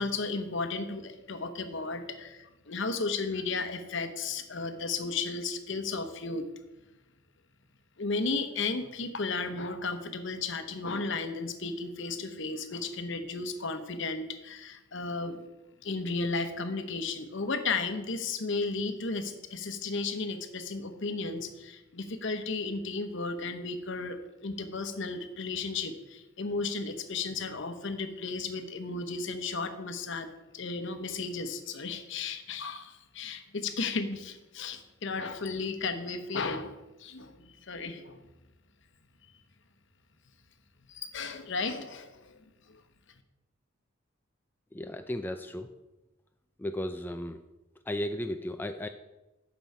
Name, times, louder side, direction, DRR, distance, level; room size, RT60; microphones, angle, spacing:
voice 1, 0.0-6.4 8.0-15.4 15.8-36.7 37.0-38.2 40.9-42.4 42.7-42.8, left 3 dB, 60° left, 9 dB, 0.9 m, -34 dB
voice 2, 44.7-45.7 46.6-47.4 47.9-48.9, left 1 dB, 10° left, 7 dB, 0.3 m, -35 dB
9.2 x 6.2 x 5.4 m, 1.0 s
head